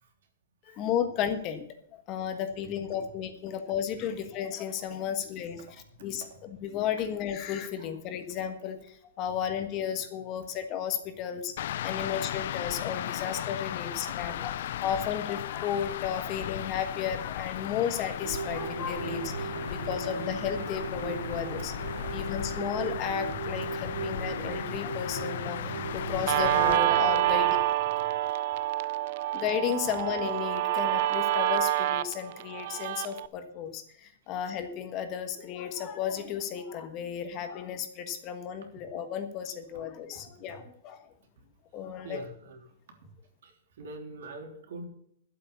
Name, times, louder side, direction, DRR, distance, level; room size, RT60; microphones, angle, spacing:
voice 1, 0.6-1.6 1.9-11.5 11.8-14.5 14.8-21.7 22.1-27.6 29.3-41.1 41.7-42.2, left 8 dB, 25° left, 8 dB, 1.4 m, -33 dB
sound 1, 11.6-26.8, left 12 dB, 55° left, 0.4 m, -36 dB
sound 2, 18.2-27.6, right 7 dB, 80° right, 1.1 m, -38 dB
Guitar, 26.3-33.3, right 15 dB, 45° right, 0.4 m, -27 dB
voice 2, 42.0-43.0 43.4-44.9, right 2 dB, 65° right, 4 dB, 3.2 m, -44 dB
12.0 x 8.3 x 6.8 m, 0.70 s
hypercardioid pair, 165°, 0 cm